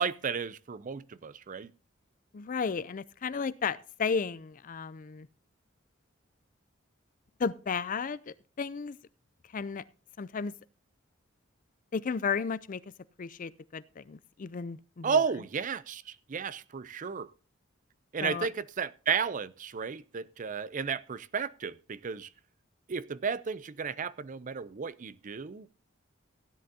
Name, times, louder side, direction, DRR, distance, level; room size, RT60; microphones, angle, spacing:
voice 1, 0.0-1.7 15.0-17.3 18.1-22.3 22.9-25.7, right 6 dB, 40° right, 0.5 m, -33 dB
voice 2, 2.3-5.3 7.4-9.0 9.5-9.8 10.2-10.5 11.9-12.8 13.2-15.2 18.2-18.5, left 5 dB, 40° left, 0.4 m, -33 dB
16.0 x 10.5 x 2.7 m
head